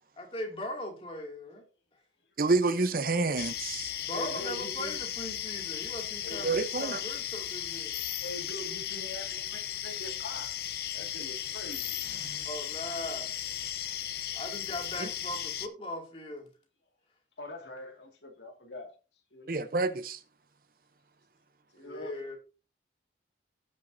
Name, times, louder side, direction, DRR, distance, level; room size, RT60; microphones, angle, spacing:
voice 1, 0.2-1.6 4.0-8.0 12.4-13.4 14.3-16.5 21.8-22.4, left 1 dB, 30° left, 2.4 m, -39 dB
voice 2, 2.4-3.9 6.4-7.0 12.0-12.4 15.0-15.1 19.5-20.2, right 3 dB, 50° right, 0.7 m, -29 dB
sound 1, 3.4-15.7, left 11 dB, 55° left, 0.7 m, -36 dB
voice 3, 4.1-5.0 6.2-6.6 8.2-10.6 10.9-12.0 17.4-18.9 19.3-19.5 21.7-22.1, left 1 dB, 75° left, 2.0 m, -43 dB
16.5 x 6.3 x 2.7 m
head